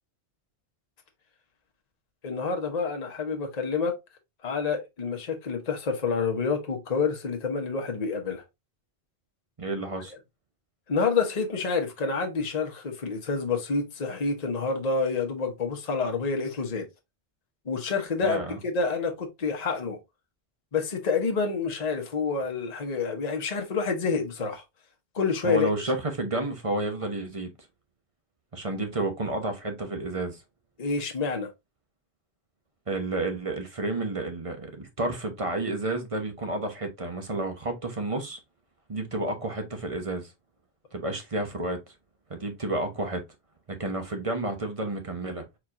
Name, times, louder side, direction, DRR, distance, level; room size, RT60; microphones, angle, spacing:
voice 1, 2.2-3.9 4.4-8.4 10.9-16.9 17.7-20.0 20.7-24.6 25.1-25.7 30.8-31.5, left 4 dB, 40° left, 1.0 m, -28 dB
voice 2, 9.6-10.1 18.2-18.6 25.4-27.5 28.5-30.4 32.9-38.4 38.9-40.3 40.9-41.8 42.3-43.2 43.7-45.4, right 2 dB, 30° right, 1.0 m, -30 dB
4.5 x 4.3 x 2.5 m
omnidirectional pair, 1.1 m